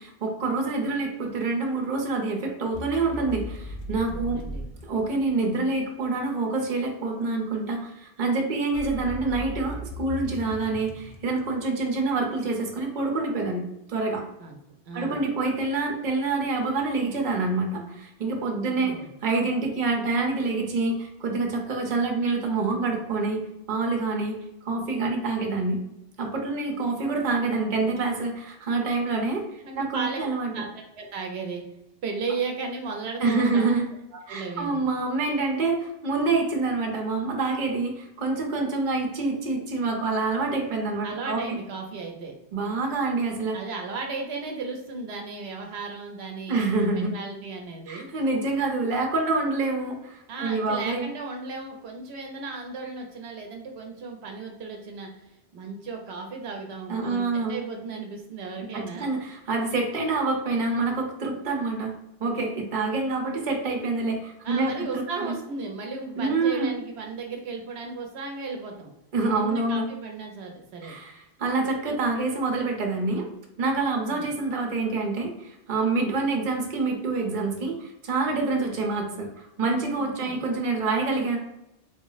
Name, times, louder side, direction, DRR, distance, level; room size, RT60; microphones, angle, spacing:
voice 1, 0.0-4.4 4.8-13.6 13.9-14.2 14.9-18.9 19.2-25.8 26.2-30.5 33.2-33.9 34.3-41.6 42.5-43.6 46.5-47.1 47.9-51.1 56.9-57.6 58.6-61.9 62.2-65.3 66.2-66.7 69.1-69.8 70.8-73.3 73.6-81.4, right 3 dB, 50° right, 2 dB, 0.8 m, -27 dB
sound 1, 2.7-5.7 8.7-12.2, left 1 dB, 50° left, 0.4 m, -37 dB
voice 2, 4.1-4.6 14.4-14.6 14.9-15.2 18.5-19.1 29.7-30.2 30.5-31.6 32.0-33.7 34.1-34.9 41.0-42.3 43.5-46.6 46.9-48.1 50.3-59.1 64.4-68.9 69.3-70.9 73.9-74.3 80.0-80.4, right 4 dB, 80° right, 2 dB, 0.9 m, -35 dB
3.8 x 2.0 x 3.9 m, 0.89 s
omnidirectional pair, 1.1 m